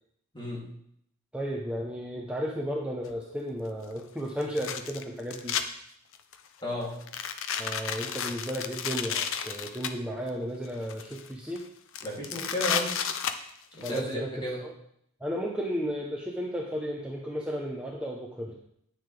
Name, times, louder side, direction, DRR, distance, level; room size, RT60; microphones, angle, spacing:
voice 1, 1.3-5.6 7.6-11.6 13.8-14.3 14.6-14.7 15.2-18.5, equal, 5° right, -2 dB, 0.9 m, -34 dB
sound 1, 3.1-3.2 4.4-5.6 6.1-6.5 7.0-9.9 10.7-11.3 11.6-11.7 11.9-14.0, left 8 dB, 60° left, 0.7 m, -32 dB
voice 2, 6.6-6.9 12.0-12.9 13.7-14.6, left 1 dB, 20° left, -5 dB, 3.0 m, -33 dB
9.9 x 9.4 x 3.4 m, 0.70 s
head